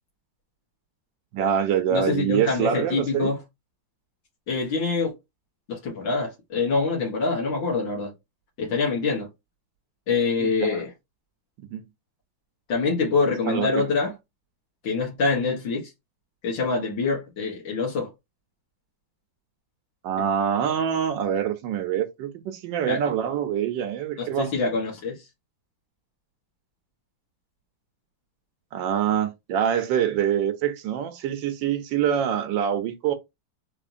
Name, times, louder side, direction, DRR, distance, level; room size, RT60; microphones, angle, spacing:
voice 1, 1.3-3.3 10.4-10.9 11.6-11.8 13.2-13.9 20.0-24.5 28.7-33.1, right 9 dB, 80° right, 1.3 m, -25 dB
voice 2, 1.9-3.4 4.5-5.1 5.7-8.1 8.6-9.3 10.1-10.9 12.7-14.1 14.8-15.9 16.4-18.1 20.2-20.3 22.9-23.0 24.2-25.2, left 4 dB, 80° left, 2.0 m, -25 dB
4.2 x 3.0 x 2.5 m
omnidirectional pair, 2.0 m